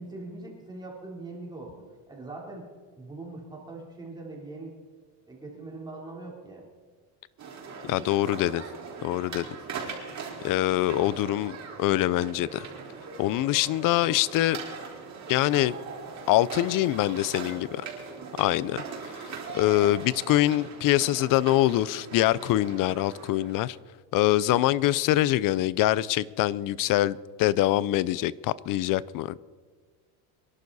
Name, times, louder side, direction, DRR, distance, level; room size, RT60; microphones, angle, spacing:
voice 1, 0.0-2.7 3.0-4.7 5.3-6.7, right 2 dB, 10° right, 3.6 m, -41 dB
sound 1, 7.4-23.8, right 5 dB, 35° right, 4.2 m, -40 dB
voice 2, 7.8-8.6 9.0-9.5 10.4-12.7 13.2-14.6 15.3-15.8 16.3-17.8 18.4-18.8 19.5-23.8 24.1-29.4, left 15 dB, 45° left, 0.6 m, -24 dB
25.5 x 11.5 x 4.1 m
cardioid pair, 140°, 45 cm